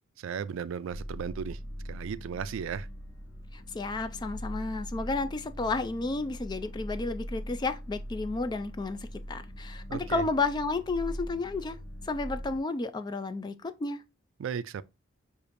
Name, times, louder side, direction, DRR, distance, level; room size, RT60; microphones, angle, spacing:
voice 1, 0.2-1.6 1.8-2.9 9.9-10.2 14.4-14.8, right 7 dB, 70° right, 0.3 m, -35 dB
sound 1, 0.9-12.6, equal, 60° left, 0.9 m, -41 dB
voice 2, 3.5-9.0 9.3-11.8 12.0-14.0, left 3 dB, 20° left, 0.3 m, -32 dB
6.6 x 2.6 x 2.5 m
head